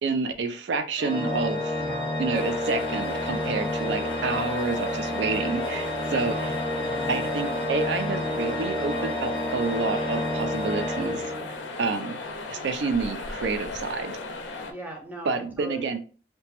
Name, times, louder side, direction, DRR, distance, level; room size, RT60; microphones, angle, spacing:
voice 1, 0.0-1.8 2.2-5.9 6.1-6.5 7.1-11.2 11.8-12.2 12.5-14.1 15.2-16.0, right 4 dB, 70° right, 7 dB, 0.4 m, -29 dB
Organ, 1.0-11.8, left 1 dB, 30° left, 0.7 m, -30 dB
voice 2, 1.8-2.1 6.1-7.2 14.7-16.0, right 1 dB, 10° right, 1 dB, 0.5 m, -40 dB
sound 1, 2.3-14.7, left 3 dB, 80° left, 0.4 m, -36 dB
2.9 x 2.2 x 2.9 m, 0.38 s
head